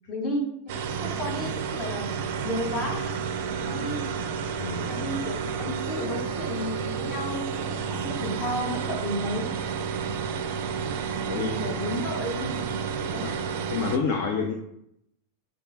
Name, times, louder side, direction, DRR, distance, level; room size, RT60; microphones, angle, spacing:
voice 1, 0.1-2.1 2.4-3.0 3.6-4.1 4.8-9.5 11.3-12.8 13.1-13.3, left 1 dB, 30° left, 1 dB, 1.0 m, -33 dB
sound 1, 0.7-14.0, right 6 dB, 50° right, 0.4 m, -31 dB
voice 2, 4.6-4.9 10.0-10.1 11.2-11.5 13.1-13.3 13.7-14.5, left 5 dB, 50° left, 3 dB, 0.4 m, -28 dB
6.5 x 2.4 x 2.5 m, 0.79 s
figure-of-eight pair, 90°, 0 cm